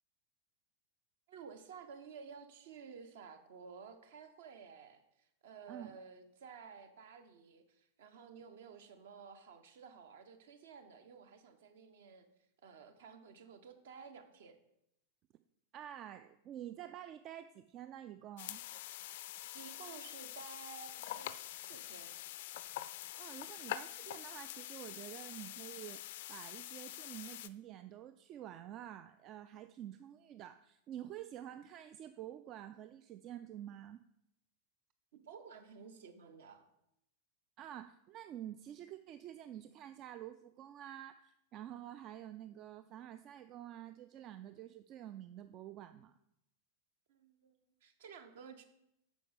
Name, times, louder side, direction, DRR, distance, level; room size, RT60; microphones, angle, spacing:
voice 1, 1.3-12.3 12.6-14.6 19.5-22.1 35.1-36.7 47.1-48.6, right 6 dB, 55° right, 9 dB, 1.1 m, -53 dB
voice 2, 15.7-18.6 23.2-26.0 26.3-34.0 37.6-46.2, right 11 dB, 35° right, 11 dB, 0.4 m, -49 dB
sound 1, 18.4-27.5, left 14 dB, 55° left, 0.4 m, -45 dB
9.2 x 6.4 x 5.0 m, 0.81 s
figure-of-eight pair, 90°, 0 cm